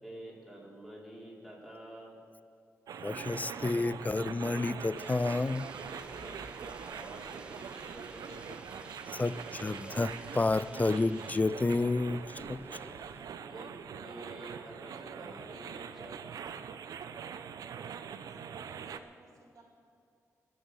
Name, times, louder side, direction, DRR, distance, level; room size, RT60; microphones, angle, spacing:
voice 1, 0.0-2.2 5.9-8.7 12.4-13.2 13.5-16.2, right 1 dB, ahead, -5 dB, 4.6 m, -49 dB
sound 1, 2.9-19.0, right 7 dB, 90° right, 0.6 m, -43 dB
voice 2, 3.0-5.6 9.1-12.4, left 3 dB, 25° left, 16 dB, 0.4 m, -30 dB
sound 2, 3.5-14.1, right 1 dB, 35° right, 2.8 m, -61 dB
sound 3, 5.0-11.4, right 2 dB, 15° right, 0.9 m, -53 dB
voice 3, 18.3-19.6, right 2 dB, 70° right, 0 dB, 2.9 m, -58 dB
21.0 x 7.1 x 6.9 m, 2.4 s
cardioid pair, 75°, 6 cm